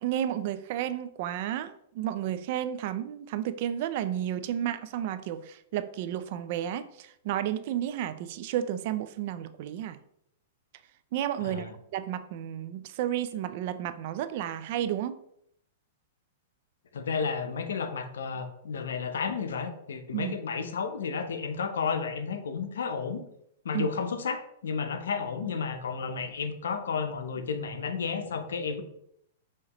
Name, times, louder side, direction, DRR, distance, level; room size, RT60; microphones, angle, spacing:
voice 1, 0.0-10.0 11.1-15.2 20.1-20.4 23.7-23.9, right 11 dB, 55° right, 11 dB, 0.4 m, -32 dB
voice 2, 11.4-11.7 16.9-23.2 23.6-28.8, left 5 dB, 85° left, 8 dB, 0.6 m, -32 dB
5.5 x 3.0 x 2.9 m, 0.73 s
hypercardioid pair, 135°, 0 cm